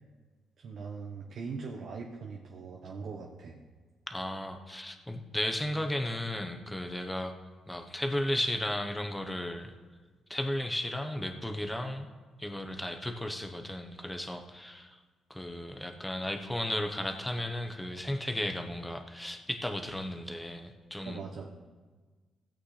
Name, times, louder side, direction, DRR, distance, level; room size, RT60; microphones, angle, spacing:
voice 1, 0.6-3.6 21.0-21.5, right 5 dB, 65° right, -1 dB, 1.0 m, -41 dB
voice 2, 4.1-7.3 7.7-9.7 10.3-12.1 12.4-15.0 15.3-21.2, left 1 dB, 10° left, 4 dB, 1.0 m, -34 dB
16.5 x 8.7 x 3.3 m, 1.4 s
cardioid pair, 90°, 0 cm